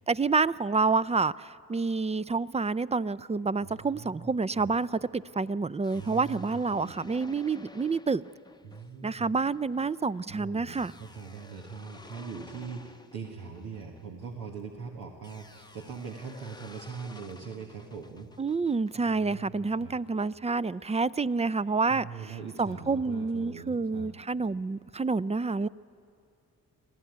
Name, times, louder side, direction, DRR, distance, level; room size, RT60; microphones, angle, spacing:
voice 1, 0.1-8.2 9.0-10.9 18.4-25.7, right 4 dB, 20° right, 19 dB, 0.4 m, -28 dB
voice 2, 3.6-4.7 5.9-6.9 8.6-9.3 10.3-18.3 19.0-19.9 21.9-24.1, right 5 dB, 90° right, -1 dB, 1.6 m, -42 dB
sound 1, 4.5-14.6 15.2-18.9, left 2 dB, 10° left, 0.7 m, -53 dB
25.5 x 15.5 x 9.4 m, 2.5 s
supercardioid pair, 50°, 36 cm